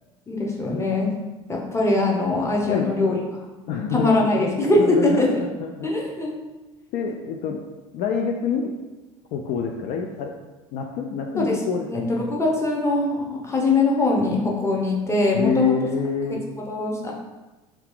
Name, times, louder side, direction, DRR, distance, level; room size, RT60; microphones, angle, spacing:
voice 1, 0.3-1.1 1.5-3.2 3.9-5.4 5.8-6.3 11.4-15.8 16.6-17.1, left 2 dB, 15° left, -2 dB, 0.8 m, -22 dB
voice 2, 3.7-4.3 4.8-5.9 6.9-7.6 7.9-8.7 9.3-10.3 10.7-11.9 15.3-16.4, left 5 dB, 55° left, 2 dB, 0.4 m, -26 dB
2.7 x 2.4 x 3.7 m, 1.1 s
hypercardioid pair, 75°, 18 cm